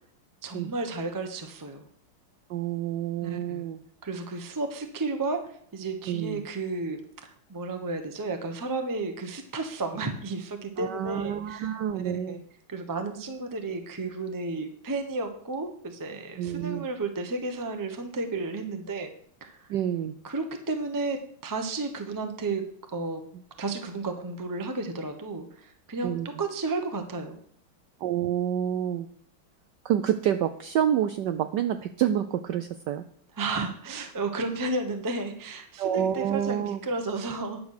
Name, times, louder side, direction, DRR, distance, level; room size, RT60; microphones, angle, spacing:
voice 1, 0.4-1.8 3.2-3.7 4.0-5.4 5.7-12.4 12.7-19.1 19.4-19.7 20.2-22.6 22.9-23.2 23.6-27.4 33.4-37.6, right 3 dB, 25° right, 5 dB, 0.4 m, -33 dB
voice 2, 2.5-3.8 6.1-6.4 10.8-12.4 16.4-16.9 19.7-20.2 26.0-26.3 28.0-29.1 29.8-33.0 35.8-36.8, right 10 dB, 80° right, 9 dB, 1.0 m, -28 dB
10.5 x 6.2 x 6.5 m, 0.62 s
omnidirectional pair, 2.4 m